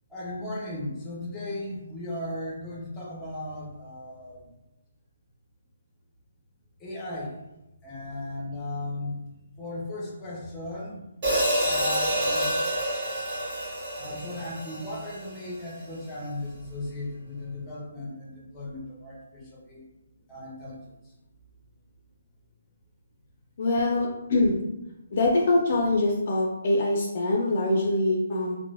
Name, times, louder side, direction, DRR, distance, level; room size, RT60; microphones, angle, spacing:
voice 1, 0.1-4.5 6.8-7.4 7.8-9.2 9.6-11.2 11.6-12.5 13.9-19.8 20.3-20.9 24.5-24.6, left 1 dB, 15° left, -3 dB, 0.7 m, -36 dB
Hi-hat, 11.2-15.5, right 1 dB, 35° right, 1.3 m, -28 dB
voice 2, 23.6-24.6 25.1-28.6, left 2 dB, 50° left, -1 dB, 0.4 m, -24 dB
2.9 x 2.0 x 2.2 m, 0.92 s
figure-of-eight pair, 145°, 0 cm